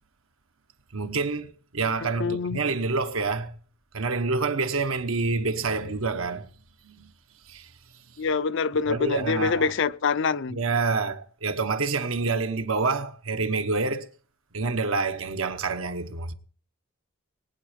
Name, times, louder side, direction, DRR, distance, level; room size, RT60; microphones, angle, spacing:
voice 1, 0.9-3.5 3.9-6.5 6.8-7.1 7.5-7.7 8.9-9.7 10.5-14.1 14.5-16.3, right 4 dB, 85° right, 1.2 m, -27 dB
voice 2, 2.2-2.6 8.2-10.6, left 5 dB, 65° left, 0.5 m, -25 dB
19.5 x 9.0 x 5.1 m
head